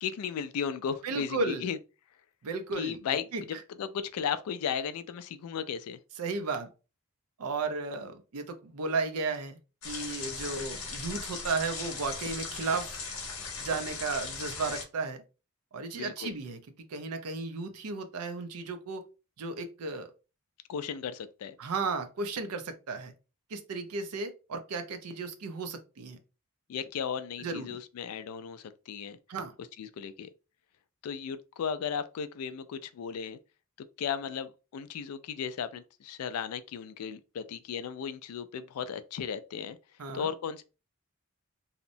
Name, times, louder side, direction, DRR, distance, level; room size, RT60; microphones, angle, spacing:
voice 1, 0.0-1.8 2.8-6.0 15.9-16.3 20.7-21.6 26.7-29.2 29.8-30.3 31.0-33.4 33.8-39.8 40.1-40.6, left 7 dB, 80° left, 0.3 m, -35 dB
voice 2, 1.0-1.6 2.4-3.0 3.3-3.4 6.2-6.7 7.4-9.6 9.8-13.0 13.6-15.2 15.7-16.6 16.9-19.0 19.4-20.1 21.6-23.1 23.5-26.2 27.4-27.8 29.3-29.5 40.0-40.3, right 3 dB, 85° right, 0.5 m, -34 dB
sound 1, 9.8-14.8, left 4 dB, 65° left, 0.8 m, -38 dB
2.8 x 2.0 x 2.6 m
head